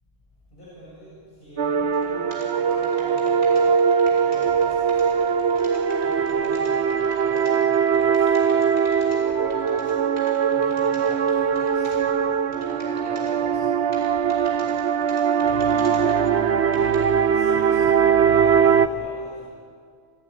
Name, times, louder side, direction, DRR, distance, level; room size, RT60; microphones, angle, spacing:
voice 1, 0.5-19.5, equal, 55° left, -8 dB, 8.2 m, -42 dB
sound 1, 1.6-18.9, right 7 dB, 90° right, 1.2 m, -21 dB
sound 2, 1.9-2.1 2.3-12.0 12.5-13.3 13.9-16.2 16.7-17.0, equal, 35° left, 5.7 m, -46 dB
29.0 x 17.5 x 10.0 m, 2.2 s
omnidirectional pair, 1.1 m